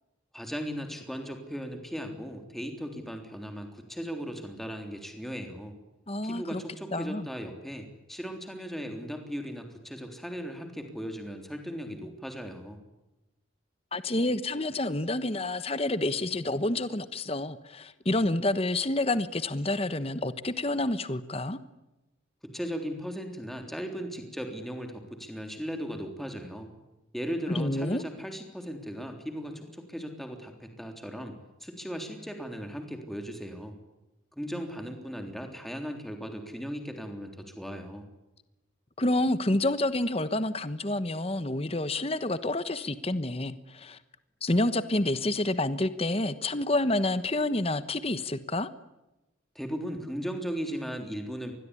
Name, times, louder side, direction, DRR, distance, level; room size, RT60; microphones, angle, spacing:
voice 1, 0.3-5.7 6.2-12.8 22.4-26.7 27.1-33.7 34.3-38.1 49.6-51.5, equal, ahead, 4 dB, 3.5 m, -37 dB
voice 2, 6.1-6.6 6.9-7.3 13.9-21.6 27.5-28.0 39.0-44.0 44.4-48.7, left 2 dB, 30° left, 13 dB, 1.2 m, -28 dB
26.5 x 21.5 x 9.8 m, 0.99 s
head